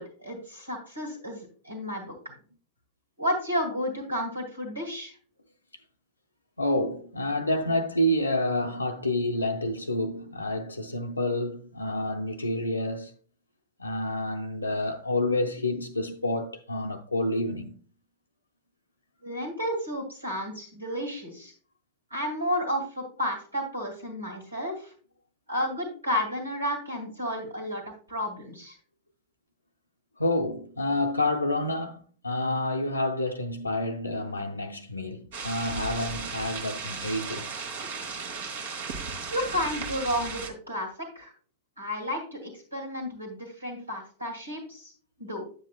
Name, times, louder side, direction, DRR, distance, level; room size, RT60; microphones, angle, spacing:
voice 1, 0.0-2.3 3.2-5.1 19.2-21.5 22.1-24.9 25.5-27.8 28.1-28.8 39.3-40.9 41.1-41.3 41.8-44.9 45.2-45.5, equal, 85° right, 2.2 m, -32 dB
voice 2, 6.6-13.1 13.8-17.8 30.2-37.6, left 1 dB, 85° left, 0.6 m, -28 dB
sound 1, 35.3-40.5, right 5 dB, 60° right, 1.2 m, -36 dB
9.1 x 7.5 x 2.2 m
figure-of-eight pair, 90°, 0 cm